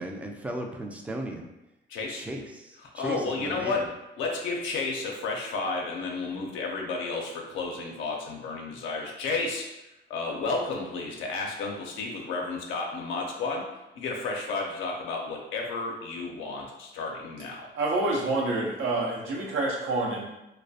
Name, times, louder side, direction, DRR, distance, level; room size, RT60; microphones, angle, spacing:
voice 1, 0.0-1.5 2.1-3.8, right 1 dB, 5° right, 2 dB, 0.3 m, -36 dB
voice 2, 1.9-2.3 2.8-3.9 4.2-9.7 10.1-13.7 14.0-17.7, left 3 dB, 85° left, 0 dB, 0.4 m, -32 dB
voice 3, 17.7-20.3, right 2 dB, 90° right, -3 dB, 0.7 m, -27 dB
2.3 x 2.0 x 2.6 m, 0.94 s
cardioid pair, 90°, 20 cm